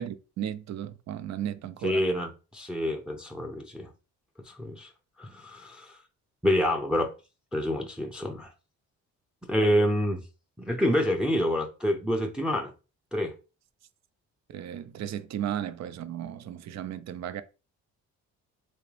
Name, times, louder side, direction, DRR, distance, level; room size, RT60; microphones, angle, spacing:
voice 1, 0.0-2.0 14.5-17.4, right 10 dB, 60° right, 0.5 m, -35 dB
voice 2, 1.8-3.9 4.5-4.9 5.2-6.0 6.4-7.1 7.5-8.5 9.5-10.3 10.6-12.7 13.1-13.3, equal, 5° right, 0.5 m, -27 dB
3.5 x 2.9 x 3.2 m
cardioid pair, 90°, 30 cm